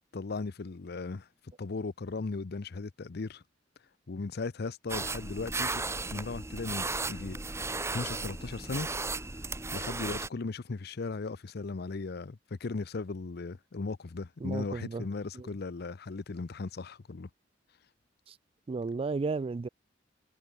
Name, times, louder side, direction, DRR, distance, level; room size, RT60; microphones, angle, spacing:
voice 1, 0.1-1.3 1.6-3.4 4.1-5.8 6.1-7.4 7.9-8.9 9.7-17.3, left 3 dB, 60° left, 0.6 m, -37 dB
sound 1, 4.9-10.3, right 3 dB, 15° right, 1.0 m, -35 dB
voice 2, 14.4-15.1 15.3-15.5 18.3-18.4 18.7-19.7, right 4 dB, 30° right, 0.3 m, -33 dB
head